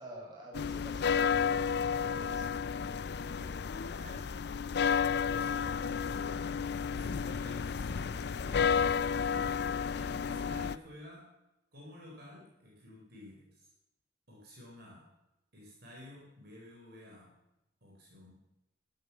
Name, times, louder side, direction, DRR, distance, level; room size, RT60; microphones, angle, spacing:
voice 1, 0.0-2.5 10.0-10.3, equal, 25° right, -4 dB, 6.5 m, -49 dB
sound 1, 0.5-10.8, left 6 dB, 65° left, 0.5 m, -32 dB
voice 2, 3.2-4.3 4.8-6.5 7.0-8.8 9.2-9.6 9.9-11.3 11.7-13.7 14.3-15.1 15.5-17.3 17.8-18.3, left 1 dB, 60° right, -3 dB, 4.5 m, -52 dB
14.0 x 9.4 x 7.2 m, 0.91 s
head